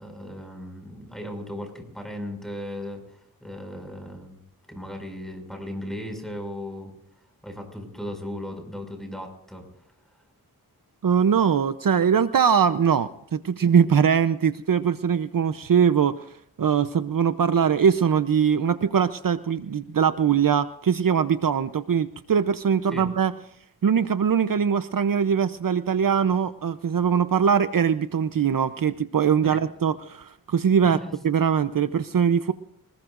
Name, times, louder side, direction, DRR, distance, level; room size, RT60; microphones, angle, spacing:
voice 1, 0.0-4.4 4.7-6.9 7.4-9.7 22.9-23.1 29.4-29.6 30.8-31.1, left 1 dB, ahead, 4 dB, 6.1 m, -36 dB
voice 2, 11.0-16.2 16.6-23.3 23.8-31.0 31.2-32.5, right 7 dB, 65° right, 11 dB, 0.8 m, -22 dB
25.5 x 21.0 x 2.6 m, 0.72 s
wide cardioid pair, 105°, 36 cm